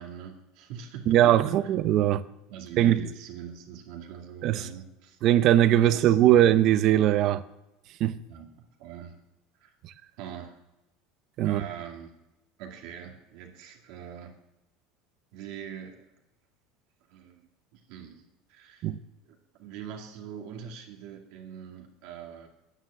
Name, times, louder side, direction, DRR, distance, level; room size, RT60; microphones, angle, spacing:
voice 1, 0.0-1.9 2.5-5.2 5.8-6.5 8.3-9.2 9.6-9.8 10.2-10.6 11.4-12.1 12.6-14.4 15.3-16.1 17.1-18.2 18.5-18.9 19.3-22.5, right 8 dB, 65° right, 2.1 m, -43 dB
voice 2, 1.1-2.2 2.8-3.1 4.4-4.7 5.2-7.4 8.0-8.2 11.4-11.6 18.8-19.0, right 12 dB, 45° right, 0.6 m, -20 dB
9.9 x 9.3 x 7.3 m
cardioid pair, 150°, 0 cm